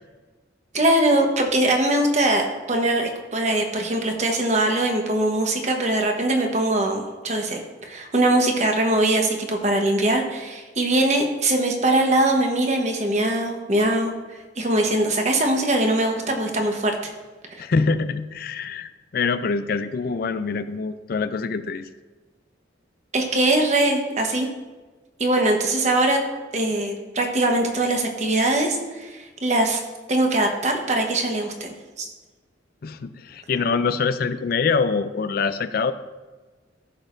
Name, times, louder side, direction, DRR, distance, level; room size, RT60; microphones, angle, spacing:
voice 1, 0.7-7.6 7.9-14.1 14.6-16.9 23.1-24.5 25.2-26.2 26.5-29.8 30.1-32.1, right 1 dB, 40° right, 3 dB, 1.1 m, -21 dB
voice 2, 17.6-21.9 32.8-35.9, left 4 dB, 55° left, 12 dB, 0.4 m, -24 dB
14.0 x 6.3 x 2.6 m, 1.3 s
head